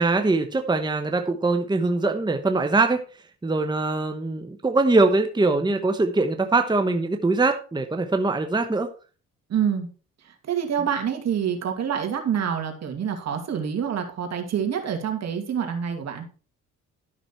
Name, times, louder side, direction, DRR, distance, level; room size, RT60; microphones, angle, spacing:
voice 1, 0.0-3.0 3.4-8.9, right 3 dB, 15° right, 6 dB, 1.0 m, -22 dB
voice 2, 9.5-9.9 10.5-16.2, right 8 dB, 60° right, 5 dB, 2.6 m, -26 dB
12.0 x 6.0 x 4.5 m, 0.37 s
cardioid pair, 90°, 30 cm